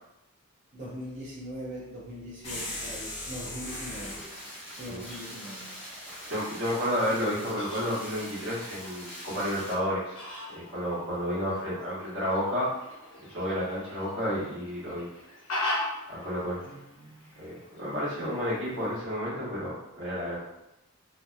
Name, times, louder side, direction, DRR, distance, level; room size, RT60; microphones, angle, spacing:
voice 1, 0.7-4.2 4.8-5.7 16.7-17.3, equal, 35° right, -9 dB, 0.5 m, -41 dB
sound 1, 2.4-4.3, left 1 dB, 30° left, 0.6 m, -37 dB
sound 2, 3.7-9.7, equal, 5° right, 0.9 m, -44 dB
voice 2, 6.2-10.2 10.5-12.7 13.3-15.1 16.1-16.7 17.4-20.4, equal, 55° right, -8 dB, 1.1 m, -31 dB
Fowl, 7.0-19.0, left 1 dB, 70° left, 1.0 m, -41 dB
2.7 x 2.1 x 2.2 m, 0.87 s
head